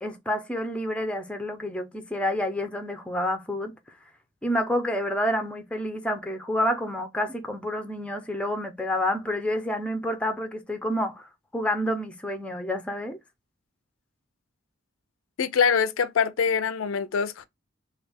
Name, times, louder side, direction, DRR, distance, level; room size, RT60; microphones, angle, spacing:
voice 1, 0.0-3.8 4.4-13.2, left 1 dB, 5° left, 0.4 m, -29 dB
voice 2, 15.4-17.5, left 6 dB, 85° left, 0.4 m, -24 dB
3.3 x 2.4 x 3.4 m
head